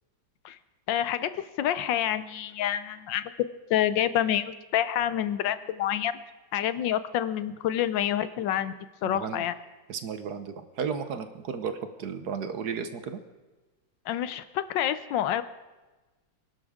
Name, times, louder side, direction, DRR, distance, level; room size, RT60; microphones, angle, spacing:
voice 1, 0.9-3.2 3.7-6.1 6.5-8.7 9.0-9.5 14.1-15.4, left 11 dB, 80° left, 13 dB, 1.4 m, -27 dB
voice 2, 9.0-9.4 9.9-13.2, right 6 dB, 65° right, 9 dB, 1.3 m, -34 dB
24.0 x 11.5 x 3.6 m, 1.2 s
omnidirectional pair, 2.0 m